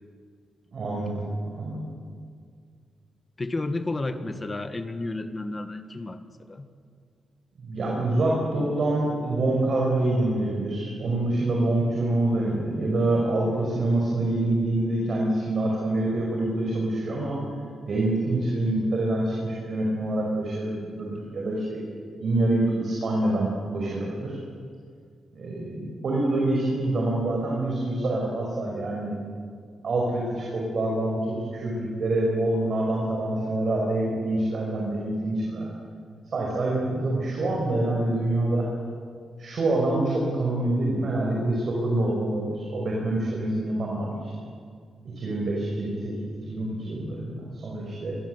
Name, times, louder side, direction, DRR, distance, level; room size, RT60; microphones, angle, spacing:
voice 1, 0.7-1.3 1.6-1.9 7.6-17.4 17.8-21.8 22.2-24.4 25.3-29.1 29.8-35.7 36.3-38.6 39.4-44.3 45.0-46.1 46.5-48.2, right 2 dB, 45° right, -2 dB, 5.6 m, -26 dB
voice 2, 3.4-6.7, left 2 dB, 20° left, 9 dB, 1.6 m, -32 dB
28.0 x 23.0 x 8.1 m, 2.1 s
wide cardioid pair, 175°, 0 cm